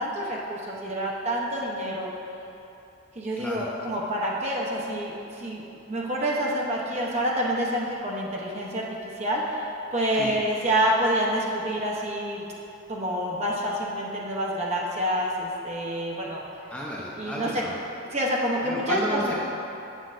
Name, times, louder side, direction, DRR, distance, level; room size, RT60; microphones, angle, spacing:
voice 1, 0.0-2.1 3.2-8.8 9.2-9.7 9.9-12.4 12.9-16.4 17.2-17.6 18.1-19.3, equal, 35° right, -3 dB, 0.8 m, -27 dB
voice 2, 3.4-3.7 10.1-10.4 16.7-17.8 18.6-19.3, left 1 dB, 10° left, -5 dB, 0.6 m, -32 dB
7.6 x 6.9 x 2.5 m, 2.8 s
head